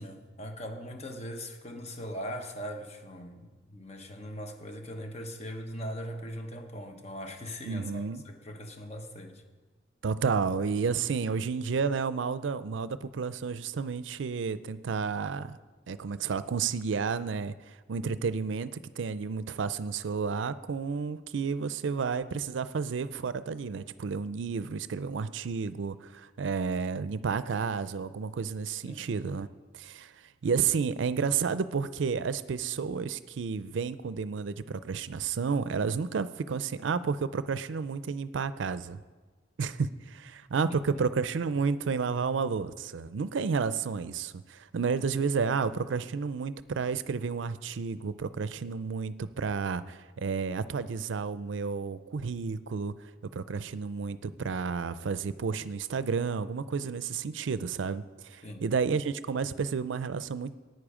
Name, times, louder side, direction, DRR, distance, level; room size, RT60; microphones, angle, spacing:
voice 1, 0.0-9.4 28.9-29.1 40.9-41.0 58.4-58.7, equal, 35° left, 5 dB, 1.0 m, -40 dB
voice 2, 7.7-8.2 10.0-15.6 15.9-17.5 17.9-29.5 29.7-30.1 30.4-39.0 39.6-52.9 53.3-60.5, right 5 dB, 80° right, 14 dB, 0.4 m, -31 dB
14.0 x 9.4 x 4.9 m, 1.4 s
head